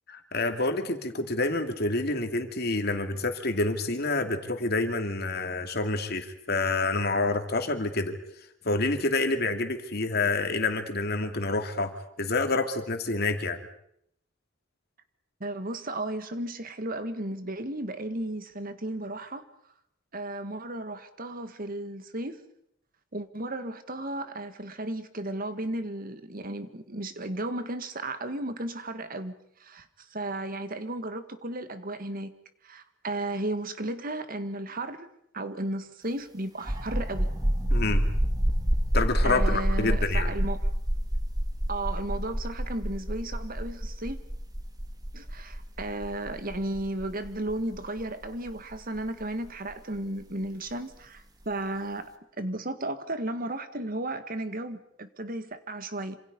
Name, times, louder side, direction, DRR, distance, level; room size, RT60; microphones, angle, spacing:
voice 1, 0.1-8.1 8.6-13.6 37.7-38.0 38.9-40.3, left 3 dB, 55° left, 6 dB, 2.6 m, -28 dB
voice 2, 15.4-19.4 20.1-22.4 23.1-29.3 29.6-32.3 32.6-35.1 35.3-37.3 39.2-40.7 41.7-44.2 45.1-52.1 52.4-56.2, right 1 dB, 50° right, 10 dB, 1.8 m, -34 dB
sound 1, 36.6-50.0, equal, 20° right, 1.9 m, -28 dB
27.0 x 27.0 x 5.4 m, 0.74 s
head